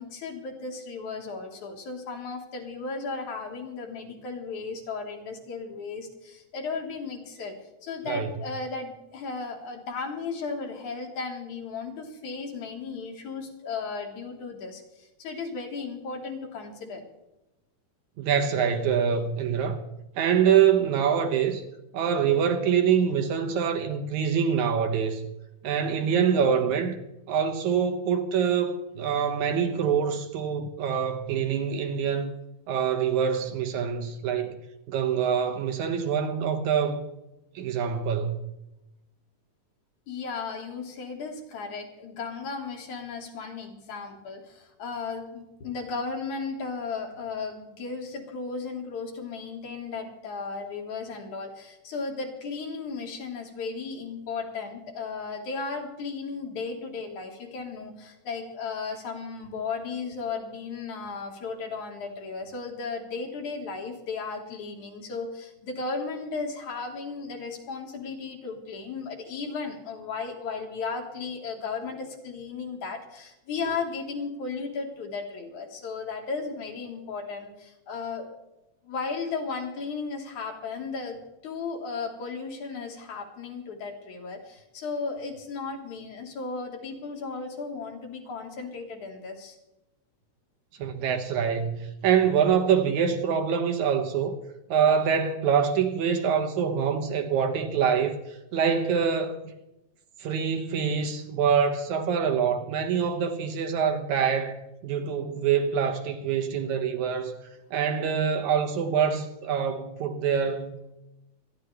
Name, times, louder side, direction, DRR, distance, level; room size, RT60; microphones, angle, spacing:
voice 1, 0.0-17.0 40.1-78.3 78.8-89.6 90.8-90.9, left 4 dB, 70° left, 3.3 m, -35 dB
voice 2, 18.2-19.8 20.2-21.6 21.9-25.3 25.6-27.0 27.3-32.3 32.7-34.6 34.9-37.0 37.6-38.5 90.8-94.3 94.7-99.4 100.2-107.4 107.7-110.9, right 7 dB, 70° right, 2.3 m, -25 dB
26.0 x 11.0 x 3.4 m
omnidirectional pair, 3.6 m